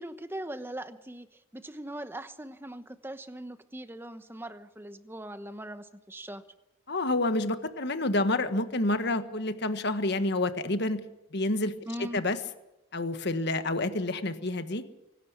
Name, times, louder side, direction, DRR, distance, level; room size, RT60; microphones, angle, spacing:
voice 1, 0.0-6.4 11.9-12.2, right 1 dB, 10° right, 10 dB, 1.0 m, -40 dB
voice 2, 6.9-11.0 11.3-11.7 12.0-12.4 12.9-14.8, left 2 dB, 55° left, 10 dB, 1.5 m, -28 dB
25.0 x 12.0 x 8.9 m, 0.95 s
head